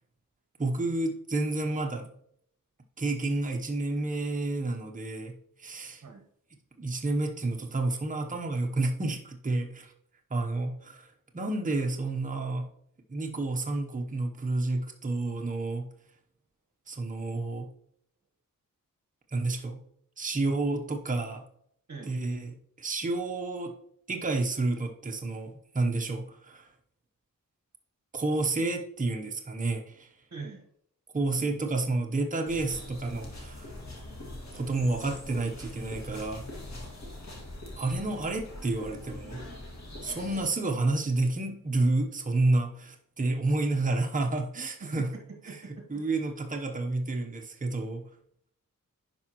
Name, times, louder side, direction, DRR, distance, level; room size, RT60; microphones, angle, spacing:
voice 1, 0.6-2.1 3.0-6.0 6.8-9.9 10.3-11.1 11.3-12.7 13.1-15.9 16.9-17.7 19.3-19.8 20.2-21.4 22.1-23.7 24.1-26.7 28.1-30.1 31.1-33.7 34.5-36.5 37.8-39.4 40.0-45.1 45.5-45.6 45.9-48.1, right 2 dB, 25° right, 3 dB, 0.8 m, -30 dB
voice 2, 30.3-30.7 44.8-46.0, right 4 dB, 50° right, 2 dB, 1.2 m, -43 dB
sound 1, 32.5-40.5, left 1 dB, 55° left, 2.2 m, -43 dB
10.5 x 4.9 x 3.0 m, 0.69 s
wide cardioid pair, 90°, 33 cm